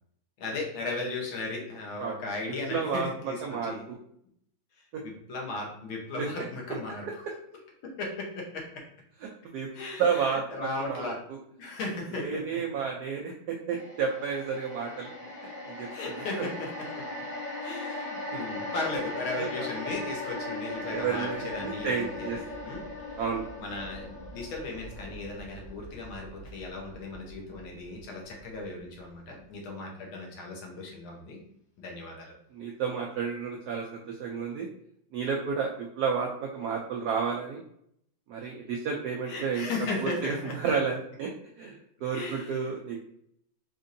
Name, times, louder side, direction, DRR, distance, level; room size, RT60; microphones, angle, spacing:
voice 1, 0.4-3.9 4.8-7.2 8.0-8.6 9.7-11.2 11.6-12.6 15.9-16.5 17.0-17.1 17.6-22.3 22.6-22.8 23.6-31.4 31.8-32.3 39.3-40.7 42.1-42.7, left 2 dB, 80° left, 0 dB, 1.7 m, -36 dB
voice 2, 2.7-4.0 4.9-5.0 6.2-6.3 9.2-9.7 10.0-11.4 12.1-15.1 15.4-15.9 16.4-16.5 19.4-19.5 20.9-22.4 23.2-23.5 32.5-34.7 35.1-37.6 38.3-39.7 40.0-41.3 41.6-43.1, right 6 dB, 80° right, 0 dB, 0.8 m, -31 dB
sound 1, 13.7-28.0 28.4-28.5, left 2 dB, 55° left, 1.7 m, -39 dB
4.5 x 2.5 x 2.6 m, 0.70 s
omnidirectional pair, 2.2 m